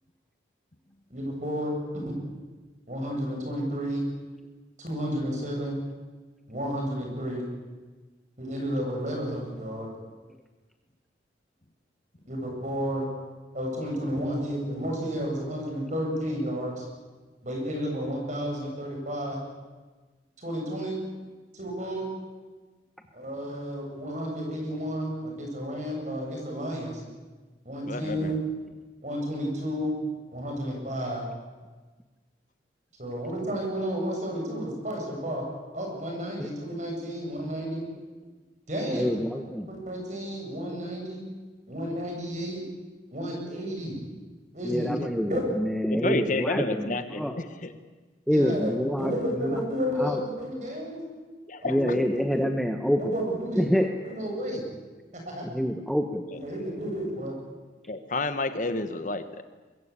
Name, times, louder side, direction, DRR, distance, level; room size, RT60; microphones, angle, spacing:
voice 1, 1.1-2.1 2.9-4.0 4.8-5.8 6.5-7.5 8.4-9.9 12.3-13.1 13.5-16.9 17.4-19.4 20.4-21.0 21.5-22.1 23.1-27.0 27.6-28.4 29.0-30.0 30.3-31.2 33.0-35.4 35.7-37.9 38.7-39.1 39.7-41.2 41.7-42.6 43.1-44.0 44.5-44.9 45.3-45.4 48.3-51.0 51.6-52.0 53.0-54.6 55.2-55.4 56.4-57.4, equal, 40° right, 1 dB, 8.0 m, -32 dB
voice 2, 27.8-28.3 45.9-47.8 51.5-51.8 56.3-56.7 57.9-59.4, left 2 dB, 45° left, 10 dB, 1.2 m, -30 dB
voice 3, 38.9-39.7 44.6-46.9 47.2-47.3 48.3-49.6 50.0-50.2 51.7-53.0 53.6-53.9 55.4-56.2, equal, ahead, 4 dB, 1.2 m, -26 dB
24.0 x 22.0 x 8.8 m, 1.3 s
head